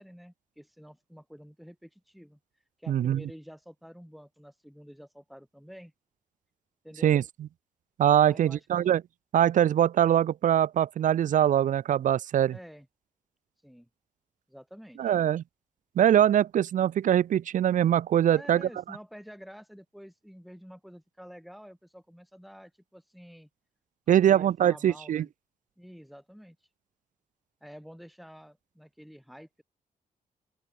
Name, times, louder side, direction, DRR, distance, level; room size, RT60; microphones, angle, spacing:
voice 1, 0.0-2.4 2.8-5.9 6.8-7.2 8.2-8.9 12.5-12.9 13.6-13.9 14.5-15.1 18.3-23.5 24.1-25.3 25.8-26.7 27.6-29.6, equal, ahead, 6.1 m, -49 dB
voice 2, 2.9-3.2 7.0-7.2 8.0-9.0 9.3-12.6 15.0-15.4 16.0-18.6 24.1-25.2, right 10 dB, 70° right, 1.0 m, -23 dB
open air
wide cardioid pair, 155°, 14 cm